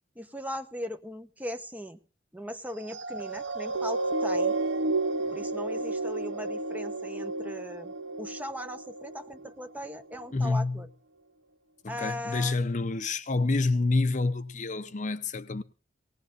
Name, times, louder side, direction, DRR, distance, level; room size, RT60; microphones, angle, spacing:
voice 1, 0.1-2.0 2.3-4.6 5.3-10.9 11.9-12.7, equal, 10° right, 1.1 m, -39 dB
sound 1, 2.8-9.5 10.1-10.2, right 2 dB, 85° right, 0.8 m, -31 dB
voice 2, 10.3-10.8 11.8-15.6, left 3 dB, 45° left, 0.8 m, -28 dB
19.5 x 18.0 x 2.6 m
head